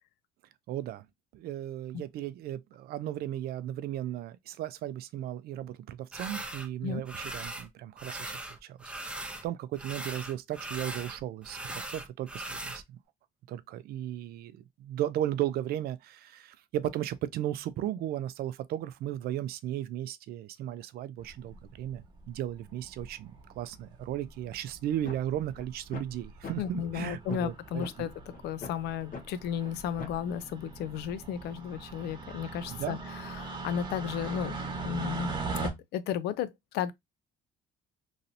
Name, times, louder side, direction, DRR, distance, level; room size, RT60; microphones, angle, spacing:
voice 1, 0.7-1.0 1.3-13.0 13.5-27.8 32.7-33.0, right 12 dB, 65° right, 0.4 m, -35 dB
sound 1, 6.1-6.7 7.1-7.7 8.0-9.5 9.7-12.8, right 2 dB, 5° right, 0.6 m, -39 dB
sound 2, 21.5-22.0 23.0-23.4 24.3-24.4 24.5-24.6 24.9-25.0 25.3-25.6 26.1-26.3 26.6-35.7, right 4 dB, 30° right, 1.1 m, -40 dB
sound 3, 25.0-25.2 25.6-25.7 25.9-26.1 26.4-26.5 26.9-27.0 27.3-27.5 27.8-27.9 28.3-28.7 29.1-29.2 29.6-29.7 30.0-30.2, left 4 dB, 55° left, 0.9 m, -40 dB
voice 2, 26.6-34.5 34.8-35.4 35.6-36.9, left 9 dB, 75° left, 0.4 m, -34 dB
3.1 x 2.7 x 2.6 m
cardioid pair, 110°, 17 cm